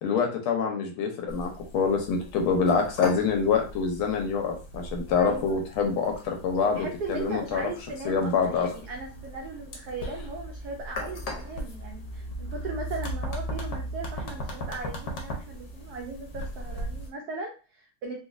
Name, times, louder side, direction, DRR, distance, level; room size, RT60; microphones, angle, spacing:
voice 1, 0.0-7.6 8.0-8.7, left 5 dB, 80° left, 3 dB, 1.5 m, -26 dB
sound 1, 1.3-17.1, equal, 65° left, 1.1 m, -38 dB
voice 2, 5.2-5.6 6.7-18.2, right 3 dB, 80° right, 1 dB, 0.8 m, -38 dB
3.9 x 2.4 x 2.5 m, 0.35 s
omnidirectional pair, 2.3 m